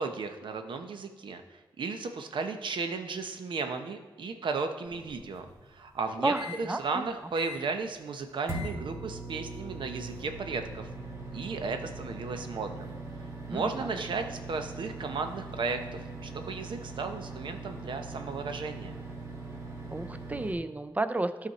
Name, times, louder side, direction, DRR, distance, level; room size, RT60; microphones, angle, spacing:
voice 1, 0.0-10.9 11.3-12.9 13.5-18.9, right 4 dB, 70° right, 6 dB, 0.9 m, -35 dB
sound 1, 4.8-6.6 7.0-7.1 7.4-7.8 8.5-20.5, right 2 dB, 35° right, 2.2 m, -41 dB
voice 2, 6.2-7.1 13.5-13.9 19.9-21.5, right 2 dB, 20° right, 11 dB, 0.5 m, -32 dB
12.5 x 4.2 x 4.2 m, 1.3 s
cardioid pair, 80°, 8 cm